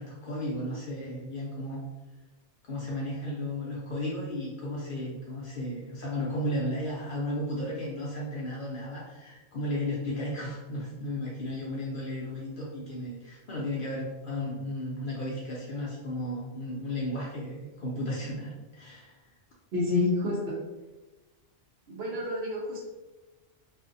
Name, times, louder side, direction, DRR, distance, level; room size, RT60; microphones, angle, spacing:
voice 1, 0.0-1.8 2.6-19.2, left 1 dB, 60° left, -5 dB, 0.6 m, -34 dB
voice 2, 19.7-20.6 21.9-22.8, left 2 dB, 65° right, -3 dB, 0.9 m, -28 dB
2.5 x 2.4 x 2.5 m, 1.2 s
omnidirectional pair, 1.2 m